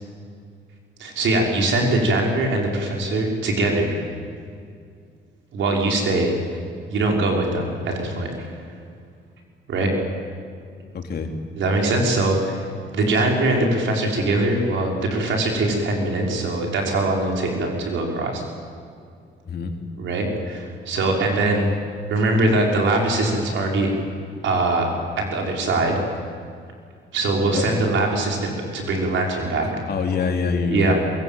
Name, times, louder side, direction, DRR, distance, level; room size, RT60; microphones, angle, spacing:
voice 1, 1.0-3.9 5.5-6.4 6.9-8.5 9.7-9.9 11.6-12.6 12.9-18.4 20.0-21.7 22.1-23.9 24.4-24.9 25.2-26.0 27.1-29.7 30.7-30.9, right 2 dB, 75° right, 0 dB, 5.7 m, -22 dB
voice 2, 10.9-11.3 19.5-19.7 27.5-27.6 29.9-30.9, left 5 dB, 55° left, 4 dB, 3.3 m, -25 dB
23.0 x 22.5 x 9.2 m, 2.2 s
cardioid pair, 90°, 20 cm